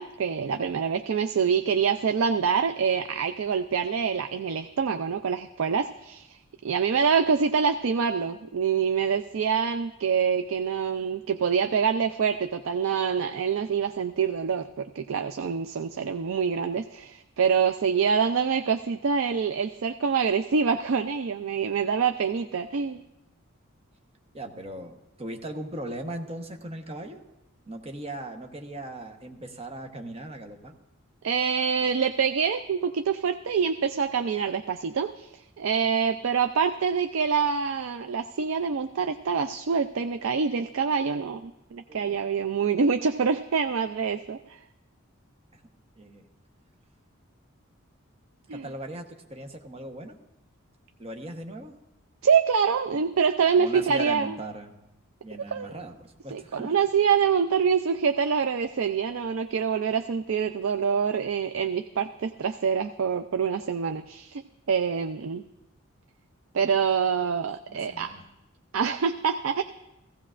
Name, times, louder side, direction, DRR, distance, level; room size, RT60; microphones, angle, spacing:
voice 1, 0.0-6.4 6.6-23.0 31.2-44.6 48.5-48.6 52.2-54.4 55.5-55.8 56.3-64.4 64.7-65.4 66.5-68.1 68.7-69.6, right 6 dB, 75° right, 9 dB, 0.4 m, -26 dB
voice 2, 24.3-27.2 27.7-30.7 41.9-42.2 45.5-45.6 46.0-46.3 48.5-50.2 51.0-51.7 52.9-53.0 53.5-54.8 55.2-56.7 67.6-68.3, right 1 dB, 30° right, 4 dB, 1.0 m, -39 dB
16.0 x 15.5 x 2.5 m, 0.93 s
head